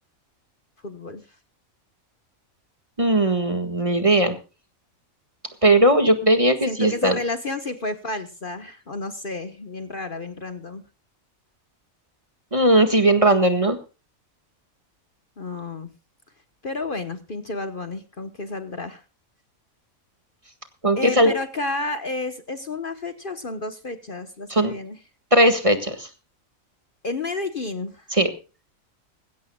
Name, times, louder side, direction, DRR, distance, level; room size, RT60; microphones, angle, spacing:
voice 1, 0.8-1.2 6.6-10.8 15.4-15.9 16.6-19.0 20.9-25.0 27.0-28.0, left 2 dB, 40° left, 9 dB, 1.2 m, -31 dB
voice 2, 3.0-4.3 5.6-7.2 12.5-13.8 20.8-21.3 24.5-24.7 25.3-26.1 28.1-28.3, right 1 dB, 25° right, 8 dB, 1.7 m, -18 dB
20.0 x 16.5 x 2.3 m, 0.32 s
omnidirectional pair, 1.4 m